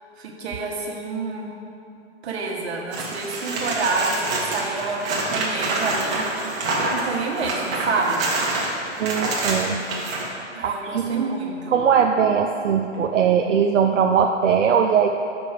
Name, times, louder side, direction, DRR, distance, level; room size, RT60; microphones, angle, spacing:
voice 1, 0.2-1.6 2.2-4.2 4.5-6.2 6.8-8.2 10.5-11.8, right 4 dB, 60° right, 0 dB, 1.5 m, -28 dB
sound 1, 2.9-10.3 12.9-13.0, right 2 dB, 35° right, 1.4 m, -26 dB
voice 2, 9.0-9.8 10.6-11.3 11.7-15.1, right 7 dB, 85° right, 3 dB, 0.6 m, -20 dB
5.7 x 5.2 x 6.6 m, 2.6 s
hypercardioid pair, 135°, 36 cm